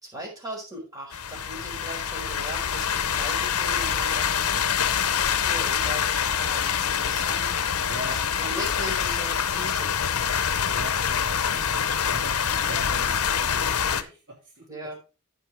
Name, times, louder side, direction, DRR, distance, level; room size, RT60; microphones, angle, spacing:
voice 1, 0.0-5.0 5.4-7.5 8.4-9.9 14.7-15.0, right 1 dB, 15° right, -1 dB, 4.6 m, -39 dB
sound 1, 1.1-14.0, left 8 dB, 80° left, 0.8 m, -25 dB
voice 2, 7.9-8.9 10.7-14.9, right 1 dB, 55° right, -2 dB, 2.9 m, -42 dB
15.0 x 5.4 x 3.4 m, 0.31 s
head